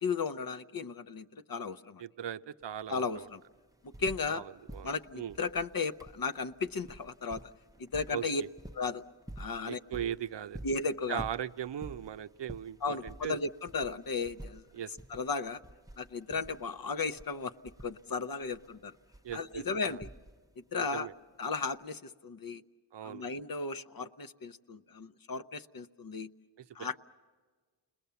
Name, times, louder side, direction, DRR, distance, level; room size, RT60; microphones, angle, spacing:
voice 1, 0.0-2.0 2.9-3.4 3.8-4.4 4.8-7.5 7.8-8.4 8.8-9.0 9.4-9.8 10.6-11.2 12.8-14.6 15.1-15.6 16.0-17.5 17.8-18.9 19.3-20.1 20.7-21.1 21.4-22.6 23.0-26.3 26.7-27.0, left 4 dB, 50° left, 10 dB, 0.7 m, -35 dB
voice 2, 2.0-3.3 4.3-5.4 8.1-8.5 9.6-10.6 11.1-13.4 14.7-14.9 19.2-20.0 20.9-21.1 22.9-23.3 26.6-27.0, right 9 dB, 65° right, 12 dB, 0.6 m, -39 dB
sound 1, 2.6-2.7 3.0-4.4 4.7-20.6 21.7-21.8, right 1 dB, 10° right, 0.6 m, -49 dB
29.0 x 20.5 x 6.9 m, 1.4 s
cardioid pair, 40°, 46 cm